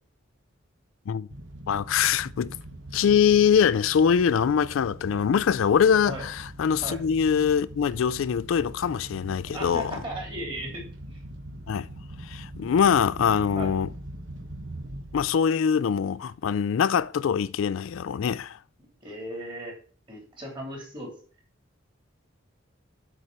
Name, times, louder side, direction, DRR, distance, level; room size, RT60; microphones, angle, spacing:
sound 1, 1.3-15.5 15.8-16.2 16.6-16.7 16.9-17.0, right 1 dB, 65° right, 1.1 m, -42 dB
voice 1, 1.7-2.5 2.9-10.0 11.7-11.9 12.2-13.9 15.1-18.6, left 7 dB, 75° left, 0.4 m, -23 dB
voice 2, 9.5-10.8 11.1-11.2 13.5-13.7 19.0-19.8 20.1-21.1, right 1 dB, 25° right, 3.1 m, -37 dB
8.4 x 4.3 x 6.5 m
head